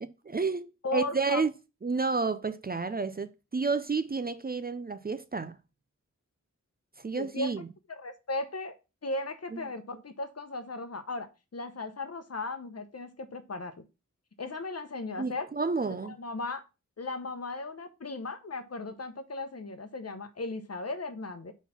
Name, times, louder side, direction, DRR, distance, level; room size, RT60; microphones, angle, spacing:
voice 1, 0.0-1.5 1.8-5.6 7.0-7.7 9.5-9.6 15.2-16.2, right 4 dB, 30° right, 0.4 m, -31 dB
voice 2, 0.8-1.4 7.1-7.5 7.9-8.7 9.0-11.3 11.5-13.8 14.4-15.5 16.0-16.6 17.0-21.5, left 2 dB, 55° left, 0.9 m, -36 dB
4.2 x 4.1 x 5.5 m
wide cardioid pair, 75°, 30 cm